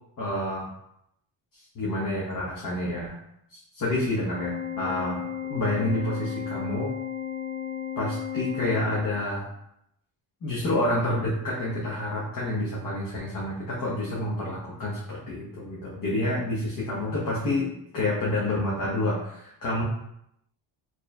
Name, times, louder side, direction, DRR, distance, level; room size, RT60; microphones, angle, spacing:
voice 1, 0.2-0.7 1.5-3.1 3.5-5.2 5.5-6.9 8.0-9.5 10.4-17.7 17.9-19.8, left 1 dB, 45° left, -6 dB, 1.0 m, -28 dB
Organ, 4.3-9.4, left 9 dB, 30° left, 0.3 m, -34 dB
4.6 x 3.1 x 2.2 m, 0.79 s
cardioid pair, 135°, 46 cm